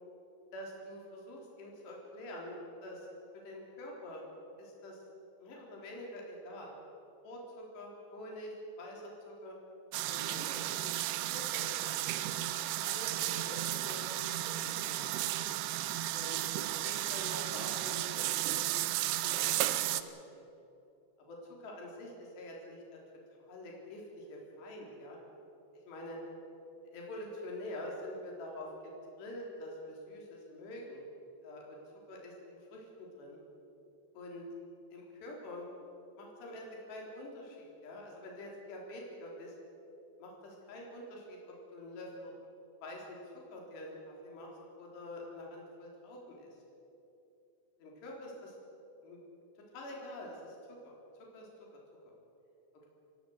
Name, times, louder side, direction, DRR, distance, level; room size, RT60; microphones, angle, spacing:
voice 1, 0.5-3.1 3.4-4.2 4.6-5.0 5.4-6.8 7.2-9.5 10.1-10.9 11.3-11.7 12.4-15.2 16.1-18.7 18.9-19.4 19.7-20.5 21.3-23.0 23.5-25.2 25.9-26.2 26.9-28.7 29.2-31.0 31.4-31.8 32.1-33.4 34.1-34.4 34.9-35.7 36.2-39.5 40.2-41.4 41.7-42.3 42.8-43.2 43.5-43.9 44.2-44.5 44.8-46.6 47.8-48.6 49.0-49.2 49.7-50.6 50.8-50.9 51.3-51.5, left 1 dB, 70° left, -2 dB, 6.0 m, -46 dB
sound 1, 9.9-20.0, right 14 dB, 80° right, 2.7 m, -34 dB
26.0 x 16.0 x 8.1 m, 2.8 s
omnidirectional pair, 5.0 m